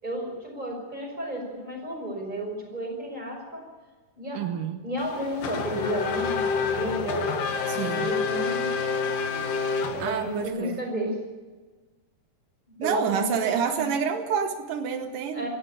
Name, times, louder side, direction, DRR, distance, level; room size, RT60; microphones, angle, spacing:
voice 1, 0.0-3.7 4.2-4.4 4.8-7.3 7.6-8.8 9.9-11.2 12.8-13.9 15.3-15.5, equal, 10° right, 2 dB, 5.6 m, -32 dB
voice 2, 4.4-4.8 7.7-8.1 10.0-10.8 12.8-15.5, right 7 dB, 80° right, 7 dB, 2.8 m, -28 dB
Race car auto racing / Accelerating revving vroom, 5.0-10.5, left 5 dB, 85° left, 3.4 m, -28 dB
18.5 x 15.0 x 9.9 m, 1.3 s
omnidirectional pair, 3.7 m